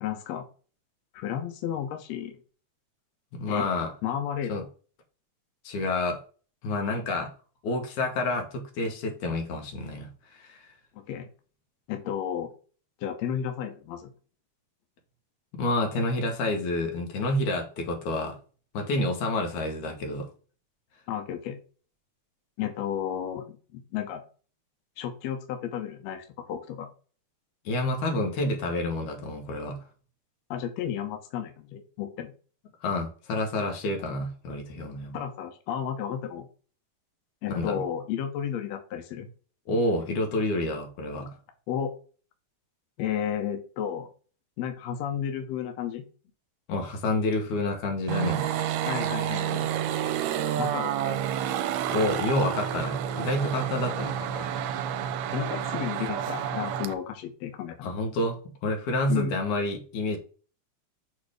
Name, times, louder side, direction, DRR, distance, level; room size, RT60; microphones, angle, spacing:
voice 1, 0.0-0.5 1.1-2.3 3.5-3.7 4.0-4.7 11.0-11.3 11.9-12.5 13.0-14.1 21.1-21.6 22.6-24.2 25.0-26.9 30.5-32.3 35.1-36.5 37.4-39.3 41.7-41.9 43.0-44.1 44.6-46.1 48.8-49.7 50.6-51.2 55.3-57.9 59.1-59.3, left 9 dB, 70° left, 6 dB, 1.9 m, -32 dB
voice 2, 3.3-3.9 4.5-4.6 5.6-6.2 6.6-7.3 7.6-10.1 10.4-10.6 15.5-18.4 18.7-20.3 27.7-29.8 32.8-35.2 37.5-37.8 39.7-41.3 46.7-48.5 51.9-54.5 57.8-60.2, left 2 dB, 90° left, 2 dB, 2.7 m, -29 dB
sound 1, 48.1-56.9, right 10 dB, 80° right, 1.8 m, -29 dB
6.4 x 3.3 x 4.9 m, 0.39 s
omnidirectional pair, 3.4 m